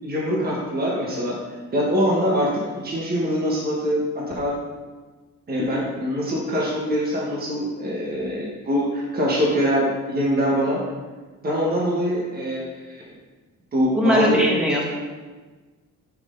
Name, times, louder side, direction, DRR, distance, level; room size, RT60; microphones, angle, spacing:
voice 1, 0.0-1.4 1.7-4.0 4.3-4.5 5.5-10.8 11.4-13.0 13.7-14.4, equal, 30° right, -4 dB, 1.4 m, -23 dB
voice 2, 13.9-14.8, left 1 dB, 5° right, -3 dB, 1.6 m, -20 dB
6.1 x 6.0 x 3.9 m, 1.3 s
cardioid pair, 120°, 31 cm